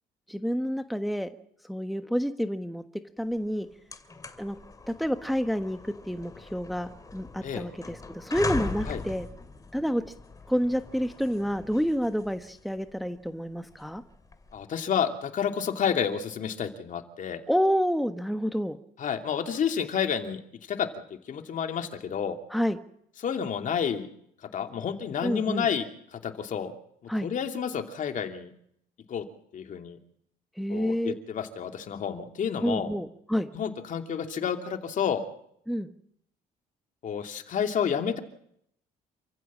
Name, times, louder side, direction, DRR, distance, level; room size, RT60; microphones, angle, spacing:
voice 1, 0.3-1.3 1.6-2.8 3.2-3.7 4.4-4.6 4.9-9.3 9.7-10.0 10.5-14.0 17.5-18.8 22.5-22.8 25.2-25.7 27.1-27.3 30.6-31.1 32.6-33.5 35.7-35.9, equal, ahead, 8 dB, 1.3 m, -29 dB
sound 1, 3.3-3.4 3.7-14.6, left 3 dB, 20° left, 2.5 m, -40 dB
voice 2, 14.5-17.4 19.0-20.4 20.7-20.9 21.3-22.4 23.2-24.1 24.5-25.8 26.1-26.7 27.2-28.5 29.1-29.2 29.5-30.0 30.7-32.9 33.5-35.2 37.0-38.2, left 7 dB, 50° left, 6 dB, 2.8 m, -30 dB
28.5 x 15.5 x 7.5 m, 0.71 s
cardioid pair, 110°, 17 cm